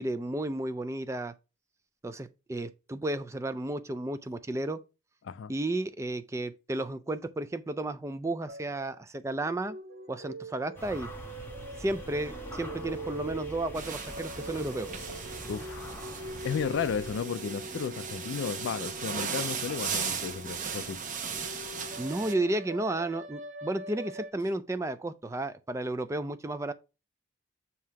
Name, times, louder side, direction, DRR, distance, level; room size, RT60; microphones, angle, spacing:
voice 1, 0.0-1.3 2.0-4.8 5.5-9.8 10.1-11.1 11.8-14.9 22.0-26.7, right 2 dB, 15° right, 0.3 m, -33 dB
sound 1, 8.5-9.0 9.3-20.4 21.3-24.3, right 1 dB, 80° right, 1.0 m, -43 dB
sound 2, 10.8-17.2, equal, 10° left, 0.9 m, -44 dB
sound 3, 13.7-22.3, right 6 dB, 40° right, 0.8 m, -37 dB
voice 2, 15.5-15.9 16.2-21.0, left 6 dB, 65° left, 0.3 m, -34 dB
7.5 x 2.8 x 4.7 m
head